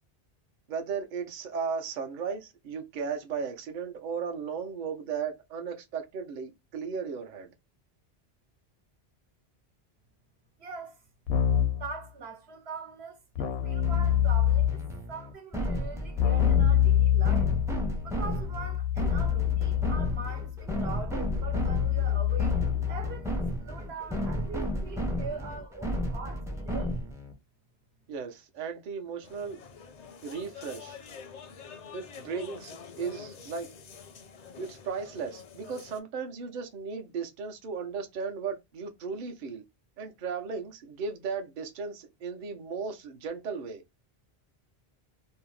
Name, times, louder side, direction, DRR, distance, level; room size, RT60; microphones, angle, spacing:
voice 1, 0.7-7.5 28.1-29.6 30.2-31.0 31.9-33.7 34.6-39.6 40.0-43.8, right 5 dB, 55° right, 0.7 m, -36 dB
voice 2, 10.6-11.0 11.8-14.8 15.1-17.5 18.0-20.5 20.8-22.5 22.9-27.0, right 4 dB, 80° right, 1.0 m, -42 dB
Keyboard (musical), 11.3-11.9 13.4-14.9 16.2-23.2, left 11 dB, 85° left, 0.8 m, -26 dB
Infiltration music punk for your indie game, 13.8-27.3, equal, 5° right, 0.4 m, -33 dB
sound 1, 29.2-36.0, left 6 dB, 55° left, 0.5 m, -46 dB
2.7 x 2.0 x 3.0 m
omnidirectional pair, 1.0 m